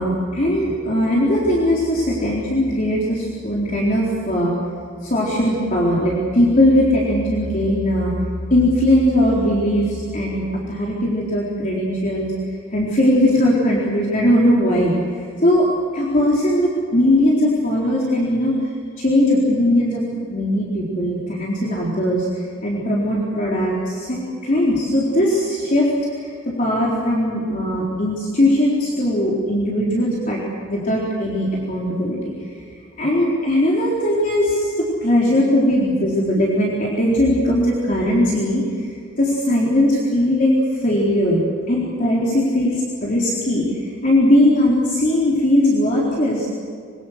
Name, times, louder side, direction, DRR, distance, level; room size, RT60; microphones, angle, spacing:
voice 1, 0.0-4.5 5.0-8.1 8.5-12.3 12.7-14.9 15.4-15.7 15.9-18.6 19.0-20.0 20.3-22.3 22.6-30.4 30.7-32.3 33.0-38.9 39.2-41.4 41.7-43.7 44.0-46.5, left 1 dB, 40° left, -5 dB, 4.0 m, -19 dB
26.0 x 23.5 x 6.6 m, 2.3 s
head